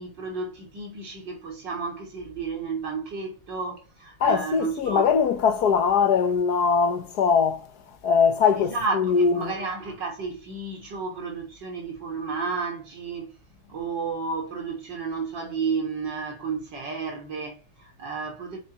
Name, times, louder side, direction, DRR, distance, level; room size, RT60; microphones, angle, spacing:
voice 1, 0.0-5.0 8.6-13.3 13.7-18.6, right 4 dB, 55° right, 4.1 m, -32 dB
voice 2, 4.2-7.7 8.0-9.5, left 6 dB, 55° left, 1.5 m, -21 dB
7.7 x 6.8 x 8.2 m
omnidirectional pair, 2.3 m